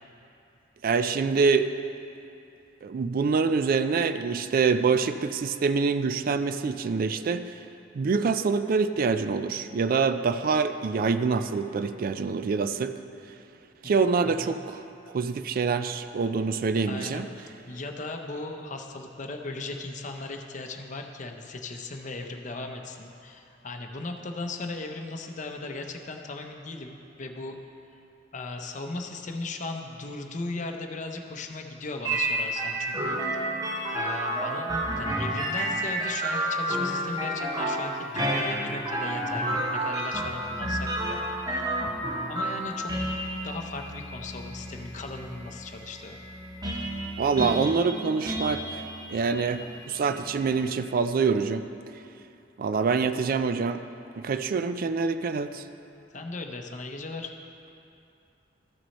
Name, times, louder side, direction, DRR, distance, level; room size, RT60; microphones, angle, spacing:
voice 1, 0.8-1.7 2.8-7.5 8.0-13.0 13.8-14.8 15.1-17.3 47.2-48.8 49.1-51.6 52.6-53.8 54.2-55.6, right 5 dB, 50° right, 10 dB, 0.4 m, -25 dB
voice 2, 14.2-14.5 16.9-17.3 17.7-27.6 28.3-33.5 33.9-41.2 42.3-42.9 43.4-46.2 56.1-57.3, left 2 dB, 40° left, 3 dB, 0.7 m, -37 dB
sound 1, 32.0-50.7, right 1 dB, 20° right, 0.9 m, -31 dB
13.5 x 6.2 x 4.2 m, 2.7 s
head